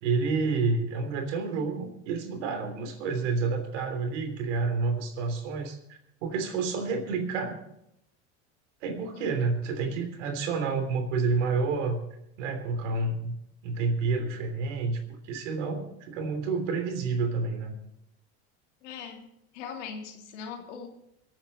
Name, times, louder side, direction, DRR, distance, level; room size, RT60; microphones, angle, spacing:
voice 1, 0.0-7.6 8.8-12.0 12.4-13.4 13.6-17.7, right 4 dB, 80° right, 6 dB, 3.3 m, -29 dB
voice 2, 18.8-19.3 19.5-20.9, left 6 dB, 80° left, 3 dB, 2.8 m, -40 dB
24.5 x 8.8 x 4.3 m, 0.80 s
supercardioid pair, 100°, 35 cm